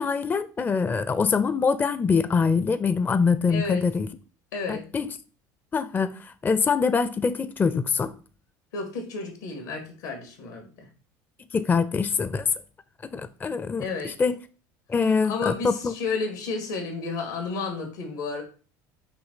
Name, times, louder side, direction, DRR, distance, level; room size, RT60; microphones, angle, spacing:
voice 1, 0.0-4.1 4.7-5.1 5.7-8.1 11.5-12.5 13.1-14.4 14.9-15.9, left 5 dB, 20° left, 0.4 m, -24 dB
voice 2, 3.5-3.9 4.5-4.9 8.7-10.9 13.8-14.2 15.0-18.4, left 4 dB, 90° left, 2.2 m, -32 dB
6.1 x 2.9 x 5.6 m
supercardioid pair, 90°, 9 cm